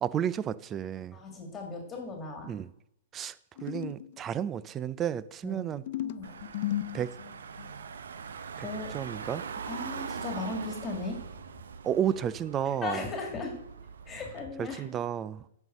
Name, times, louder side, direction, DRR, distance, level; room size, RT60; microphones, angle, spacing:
voice 1, 0.0-1.2 2.5-2.7 3.1-3.3 3.6-5.8 6.9-7.1 8.6-8.7 8.9-9.4 11.8-13.1 14.6-15.4, right 9 dB, 25° right, 0.4 m, -32 dB
voice 2, 1.1-2.5 5.4-5.7 6.0-6.3 8.6-8.9 9.7-11.2 12.7-13.5 14.1-14.8, left 3 dB, 20° left, 2.1 m, -37 dB
sound 1, 3.6-4.2 5.7-7.7, left 13 dB, 55° left, 0.4 m, -35 dB
Car / Engine, 6.2-14.4, right 6 dB, 75° right, 0.7 m, -42 dB
9.2 x 5.5 x 6.6 m
hypercardioid pair, 125°, 0 cm